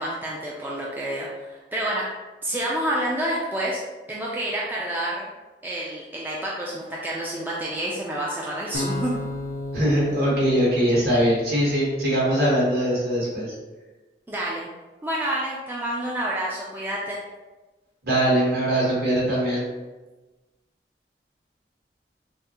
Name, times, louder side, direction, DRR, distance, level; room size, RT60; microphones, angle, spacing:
voice 1, 0.0-2.0 2.4-3.8 4.1-5.3 5.6-9.1 14.3-14.7 15.0-17.2, right 1 dB, 10° right, -5 dB, 0.3 m, -28 dB
sound 1, 8.7-11.9, left 1 dB, 55° left, 0.6 m, -33 dB
voice 2, 9.7-13.5 18.0-19.6, right 1 dB, 60° right, -6 dB, 1.5 m, -21 dB
5.5 x 2.0 x 2.9 m, 1.2 s
head